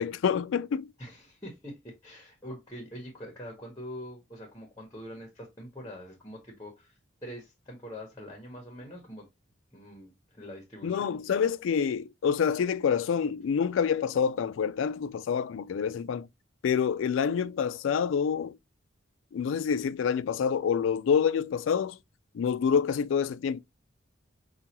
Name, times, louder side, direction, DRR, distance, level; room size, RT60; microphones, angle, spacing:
voice 1, 0.0-0.9 10.8-16.3 16.6-18.6 19.3-22.0 22.3-23.6, left 7 dB, 75° left, 0.3 m, -27 dB
voice 2, 1.0-9.3 9.7-11.2, equal, 20° left, 1.0 m, -44 dB
5.4 x 2.4 x 2.8 m
head